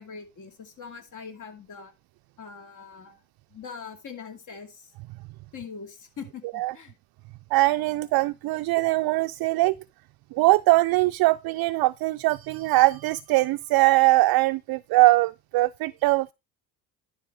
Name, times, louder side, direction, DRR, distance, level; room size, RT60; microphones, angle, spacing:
voice 1, 0.0-1.9 2.4-3.2 3.5-4.9 5.5-7.0, left 6 dB, 50° left, 2.5 m, -42 dB
voice 2, 7.5-9.7 10.3-16.3, right 20 dB, 65° right, 0.5 m, -21 dB
11.5 x 4.7 x 4.7 m
cardioid pair, 95°, 39 cm